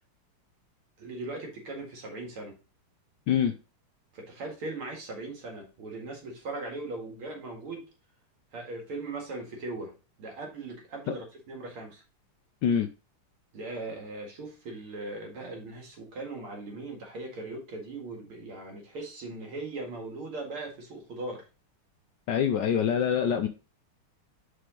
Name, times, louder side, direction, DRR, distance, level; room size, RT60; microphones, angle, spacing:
voice 1, 1.0-2.6 4.1-7.8 8.5-9.9 10.2-12.0 13.5-21.4, right 2 dB, 75° right, 1 dB, 2.8 m, -39 dB
voice 2, 22.3-23.5, left 8 dB, 75° left, 8 dB, 1.0 m, -25 dB
5.9 x 5.0 x 3.7 m, 0.31 s
omnidirectional pair, 2.4 m